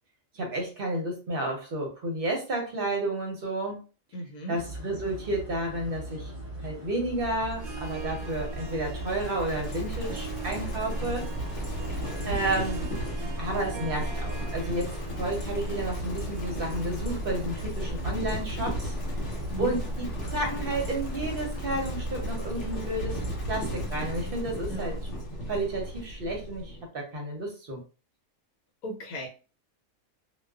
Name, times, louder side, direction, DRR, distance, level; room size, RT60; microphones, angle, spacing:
voice 1, 0.3-3.8 4.5-6.3 6.6-11.3 12.2-12.8 13.4-18.9 19.6-23.2 23.5-25.0 25.5-27.8, right 1 dB, 50° right, 0 dB, 0.8 m, -31 dB
voice 2, 4.1-4.6 12.0-12.4 19.5-19.7 24.7-24.9 28.8-29.3, equal, 80° left, 1 dB, 1.1 m, -37 dB
sound 1, 4.5-23.9, right 1 dB, 40° left, 0.6 m, -40 dB
Livestock farm animals working animals, 7.2-26.8, equal, 60° left, 1.1 m, -35 dB
Harp, 7.6-19.4, right 7 dB, 85° right, 1.0 m, -43 dB
2.3 x 2.3 x 2.3 m, 0.34 s
omnidirectional pair, 1.5 m